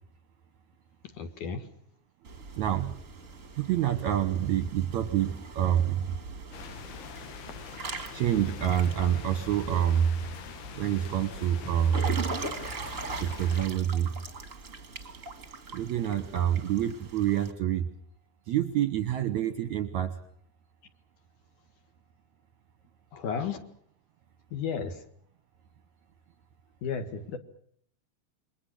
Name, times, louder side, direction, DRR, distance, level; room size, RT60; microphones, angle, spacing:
voice 1, 1.1-1.7 23.1-23.6 24.5-25.0 26.8-27.4, left 6 dB, 55° left, 8 dB, 2.9 m, -33 dB
Water / Splash splatter / Drip, 2.2-17.5, right 3 dB, 30° right, 1.5 m, -41 dB
voice 2, 2.6-3.0 3.6-6.2 8.1-10.2 10.8-12.2 13.2-14.1 15.7-17.9 18.5-20.2, right 10 dB, 65° right, 11 dB, 1.9 m, -27 dB
sound 1, 6.5-13.7, left 5 dB, 85° left, 4.0 m, -43 dB
28.0 x 23.0 x 6.2 m, 0.63 s
omnidirectional pair, 4.5 m